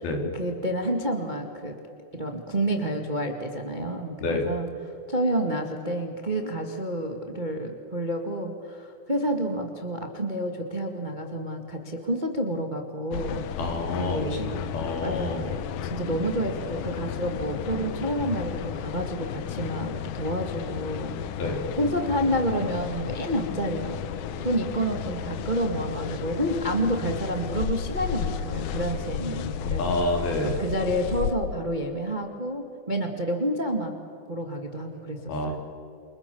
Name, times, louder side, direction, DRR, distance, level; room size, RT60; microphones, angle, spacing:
voice 1, 0.3-1.8 2.1-13.5 14.0-14.6 15.0-15.5 15.8-21.2 21.8-24.0 24.4-33.9 34.3-35.6, right 1 dB, 55° right, 3 dB, 0.5 m, -29 dB
sound 1, 13.1-31.3, left 9 dB, 85° left, 1.7 m, -33 dB
voice 2, 13.6-15.5 21.4-21.6 29.8-30.6 35.3-35.6, left 2 dB, 65° left, 2 dB, 5.0 m, -28 dB
29.5 x 27.0 x 7.1 m, 2.6 s
omnidirectional pair, 4.9 m